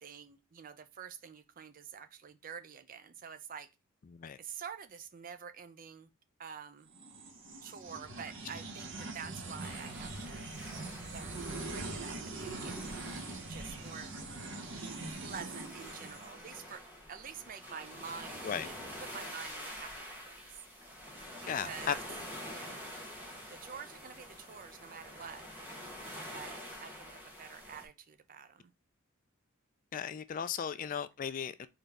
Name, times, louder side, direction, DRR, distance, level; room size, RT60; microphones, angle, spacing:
voice 1, 0.0-3.7 4.4-6.1 6.4-6.9 7.6-10.4 11.0-12.8 13.5-14.1 15.1-16.8 17.1-20.4 21.4-22.0 22.5-22.9 23.5-25.5 26.3-28.7, right 7 dB, 40° right, 0.4 m, -48 dB
sound 1, 6.9-16.6, right 2 dB, 60° right, 0.9 m, -43 dB
sound 2, 9.6-27.9, equal, 10° right, 1.1 m, -47 dB
voice 2, 21.5-21.9 29.9-31.7, left 7 dB, 40° left, 0.3 m, -36 dB
4.1 x 3.8 x 3.4 m
head